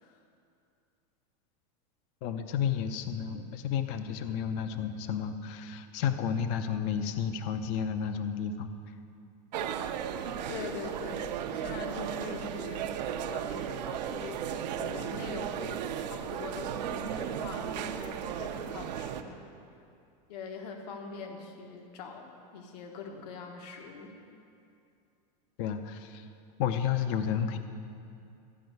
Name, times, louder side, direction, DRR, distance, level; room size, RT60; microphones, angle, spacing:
voice 1, 2.2-8.7 25.6-26.3 26.6-27.6, left 8 dB, 45° left, 9 dB, 0.6 m, -31 dB
sound 1, 9.5-19.2, right 9 dB, 85° right, 0.8 m, -35 dB
voice 2, 10.5-19.4 20.3-24.2, left 4 dB, 70° left, 3 dB, 1.4 m, -43 dB
13.0 x 5.4 x 9.2 m, 2.6 s
supercardioid pair, 155°, 21 cm